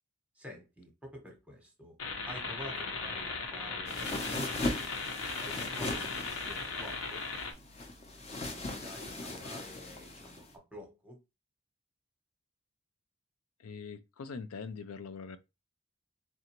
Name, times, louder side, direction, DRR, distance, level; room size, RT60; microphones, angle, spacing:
voice 1, 0.3-2.0 2.3-4.1 4.7-7.3 8.5-11.2, equal, 5° right, 0.9 m, -49 dB
sound 1, 2.0-7.5, left 4 dB, 70° left, 0.9 m, -37 dB
sound 2, 3.9-10.5, left 2 dB, 30° left, 0.6 m, -39 dB
voice 2, 13.6-15.4, left 5 dB, 90° left, 0.5 m, -42 dB
3.8 x 3.3 x 2.9 m
head